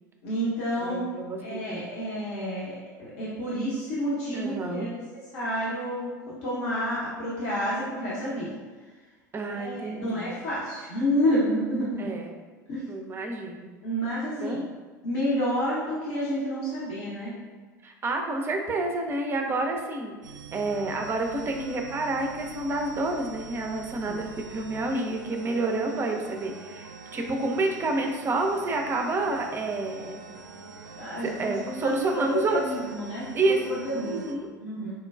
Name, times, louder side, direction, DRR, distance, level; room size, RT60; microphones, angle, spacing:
voice 1, 0.2-1.0 1.4-5.0 5.3-6.1 6.4-8.5 9.5-12.1 12.7-12.8 13.8-14.6 15.0-17.3 24.0-24.2 30.9-33.2 33.6-34.2 34.6-34.9, equal, 55° left, -8 dB, 0.9 m, -29 dB
voice 2, 0.8-1.9 4.3-4.9 9.3-10.3 12.0-12.3 12.9-13.7 14.4-14.7 17.8-20.2 20.5-30.2 31.2-32.6 33.3-34.5, right 2 dB, 25° right, 3 dB, 0.5 m, -29 dB
sound 1, 20.2-34.4, right 5 dB, 80° right, 0.4 m, -44 dB
4.4 x 2.2 x 2.3 m, 1.4 s
figure-of-eight pair, 75°, 10 cm